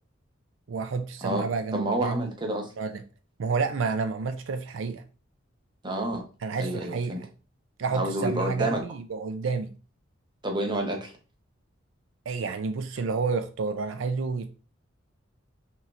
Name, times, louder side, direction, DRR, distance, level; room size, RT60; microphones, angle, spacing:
voice 1, 0.7-2.3 2.8-3.0 3.4-5.0 6.4-7.3 7.8-9.7 12.3-14.5, right 4 dB, 80° right, 0.4 m, -30 dB
voice 2, 1.7-2.7 5.8-6.2 6.6-7.2 7.9-8.8 10.4-11.1, right 1 dB, 25° right, 0.8 m, -29 dB
5.5 x 3.0 x 2.5 m
head